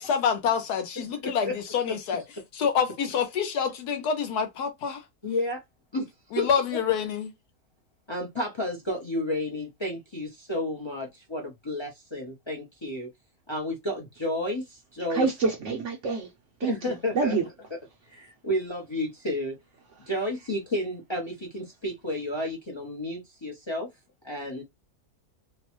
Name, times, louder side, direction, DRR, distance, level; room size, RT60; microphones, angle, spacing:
voice 1, 0.0-2.2 2.5-5.0 6.3-7.3, left 7 dB, 75° left, 1.2 m, -27 dB
voice 2, 1.2-1.5 5.2-5.6 5.9-6.1 6.4-6.5 8.1-13.1 13.5-15.3 16.6-17.4 18.1-19.6 20.1-23.9 24.2-24.6, left 1 dB, 35° left, 0.4 m, -31 dB
voice 3, 15.1-16.3 16.6-17.4, right 4 dB, 65° right, 0.8 m, -27 dB
2.9 x 2.1 x 3.0 m
omnidirectional pair, 1.7 m